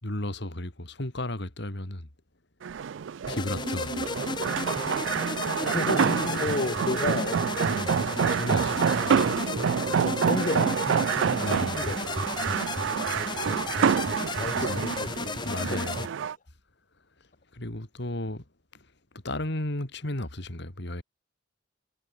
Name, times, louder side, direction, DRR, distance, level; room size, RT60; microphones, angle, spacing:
voice 1, 0.0-2.1 3.3-4.1 7.7-9.8 11.4-11.9 14.1-14.9 15.4-16.1 17.2-21.0, left 1 dB, 65° left, 3.1 m, -35 dB
sound 1, 2.6-16.3, right 7 dB, 70° right, 0.4 m, -27 dB
sound 2, 3.3-16.1, left 3 dB, 25° left, 0.6 m, -33 dB
voice 2, 5.6-7.5 9.9-12.2 13.3-14.0 14.3-15.8, left 2 dB, 45° left, 1.0 m, -33 dB
sound 3, 10.2-17.0, right 5 dB, 40° right, 2.2 m, -47 dB
head